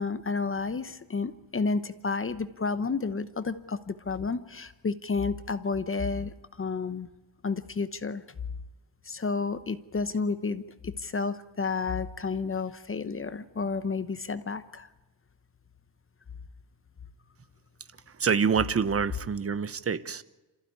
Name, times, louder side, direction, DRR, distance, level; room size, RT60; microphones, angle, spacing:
voice 1, 0.0-7.1 7.4-8.2 9.0-14.9, left 4 dB, 25° left, 13 dB, 1.0 m, -31 dB
voice 2, 18.2-20.2, right 6 dB, 30° right, 14 dB, 1.0 m, -26 dB
27.0 x 15.0 x 9.8 m, 1.1 s
cardioid pair, 140°, 48 cm